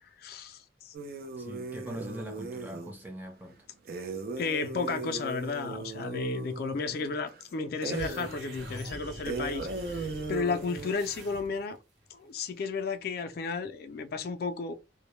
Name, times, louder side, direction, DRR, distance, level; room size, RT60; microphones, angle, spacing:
voice 1, 0.2-0.9 4.4-11.8 12.1-14.8, left 4 dB, 55° left, 0.3 m, -33 dB
sound 1, 0.9-2.9 3.9-7.4 7.8-8.3 8.7-8.8 9.3-10.9, right 3 dB, 55° right, 0.5 m, -37 dB
voice 2, 1.4-3.6, equal, 10° right, 0.6 m, -42 dB
sound 2, 7.9-11.8, right 1 dB, 70° right, 0.9 m, -44 dB
2.1 x 2.1 x 3.0 m
head